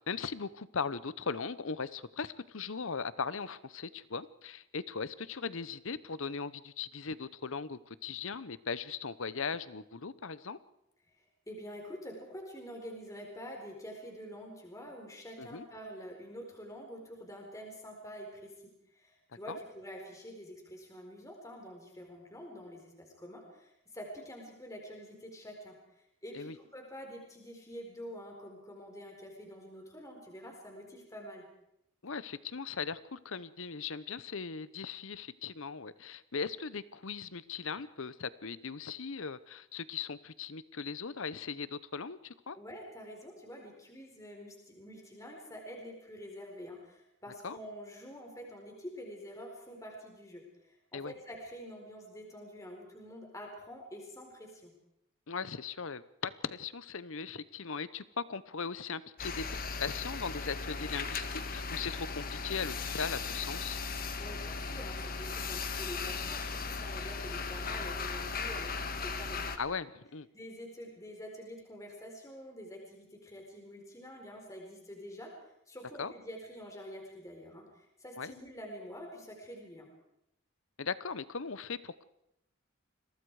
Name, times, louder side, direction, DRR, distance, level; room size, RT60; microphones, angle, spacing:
voice 1, 0.1-10.6 15.4-15.7 19.5-19.6 26.3-26.6 32.0-42.6 47.4-47.6 50.9-51.1 55.3-63.8 69.6-70.3 76.0-76.1 78.2-78.3 80.8-82.0, left 5 dB, 65° left, 16 dB, 0.8 m, -39 dB
voice 2, 11.2-18.5 18.9-31.4 42.5-54.7 64.1-69.6 70.3-75.3 75.7-79.9, equal, 15° left, 1 dB, 4.5 m, -47 dB
sound 1, 59.2-69.6, left 4 dB, 40° left, 1.5 m, -37 dB
29.0 x 22.5 x 4.9 m, 0.83 s
head